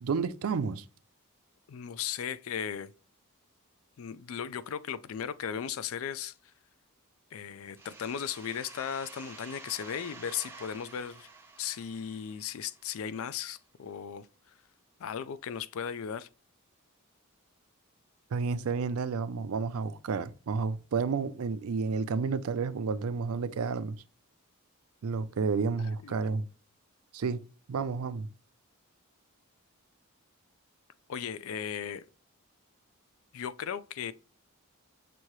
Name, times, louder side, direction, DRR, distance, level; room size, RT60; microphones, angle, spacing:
voice 1, 0.0-0.8 18.3-24.0 25.0-26.5 27.1-27.4 27.7-28.3, right 5 dB, 75° right, 0.4 m, -31 dB
voice 2, 1.7-2.9 4.0-6.3 7.3-11.3 11.6-14.3 15.0-16.3 26.0-26.3 31.1-32.0 33.3-34.1, left 8 dB, 70° left, 0.4 m, -36 dB
sound 1, 7.8-13.2, right 3 dB, 10° right, 0.6 m, -50 dB
6.1 x 2.7 x 3.0 m
head